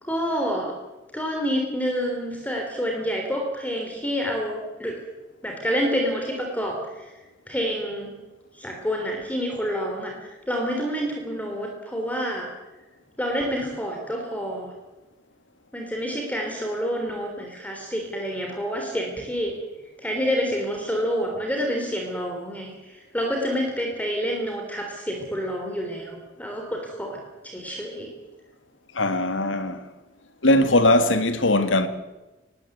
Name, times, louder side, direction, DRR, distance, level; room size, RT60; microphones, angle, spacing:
voice 1, 0.0-0.7 1.1-5.0 5.4-7.1 7.5-8.1 8.6-10.2 10.5-12.5 13.2-14.7 15.7-19.5 20.0-22.7 23.1-27.2 27.4-28.1, equal, 10° left, 3.4 m, -28 dB
voice 2, 28.9-29.9 30.4-31.9, left 1 dB, 85° left, 1.8 m, -20 dB
21.0 x 17.0 x 8.0 m
head